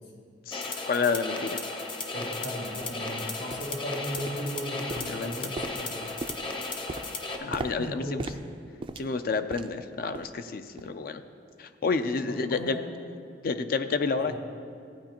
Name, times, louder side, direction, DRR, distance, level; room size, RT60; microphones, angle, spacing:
voice 1, 0.5-1.6 5.1-5.5 7.4-8.2 9.0-11.2 11.6-12.8 13.4-14.4, left 4 dB, 50° left, 9 dB, 0.4 m, -29 dB
sound 1, 0.5-7.4, left 3 dB, 30° left, 0.7 m, -35 dB
sound 2, 1.5-1.6 2.2-2.3 2.8-3.0 3.5-3.8 4.2-4.6 4.9-9.8 10.1-10.4 10.8-11.0 11.5-11.6, right 2 dB, 30° right, 0.3 m, -40 dB
voice 2, 2.0-6.0 7.4-8.3 12.2-12.8 14.2-14.4, equal, 70° left, -3 dB, 2.2 m, -37 dB
15.0 x 9.2 x 2.9 m, 2.4 s
head